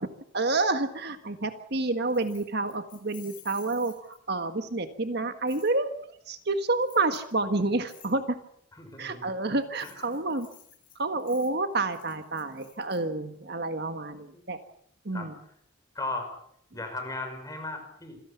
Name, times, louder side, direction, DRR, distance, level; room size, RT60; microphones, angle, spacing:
voice 1, 0.3-3.9 4.3-6.0 6.3-8.2 9.0-10.5 11.0-14.6 15.0-15.3, right 2 dB, 55° right, 8 dB, 1.6 m, -29 dB
Keys jangling, 2.1-4.4 5.5-5.7 6.8-7.3 7.9-8.1 9.6-13.0, left 12 dB, 45° left, 7.8 m, -53 dB
voice 2, 8.7-9.2 9.8-10.1 14.3-14.4 15.1-15.3 15.9-16.3 16.7-18.2, left 2 dB, 20° left, 5 dB, 5.6 m, -36 dB
26.5 x 17.0 x 7.1 m, 0.69 s
head